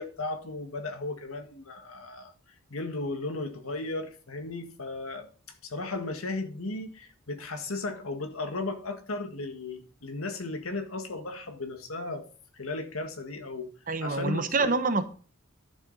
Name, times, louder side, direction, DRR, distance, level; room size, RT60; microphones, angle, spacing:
voice 1, 0.0-2.3 2.7-5.3 5.6-12.2 12.5-13.7 14.0-14.7, left 2 dB, 75° left, 1.7 m, -35 dB
voice 2, 13.9-15.0, right 3 dB, 40° right, 1.0 m, -26 dB
11.5 x 6.8 x 4.1 m
head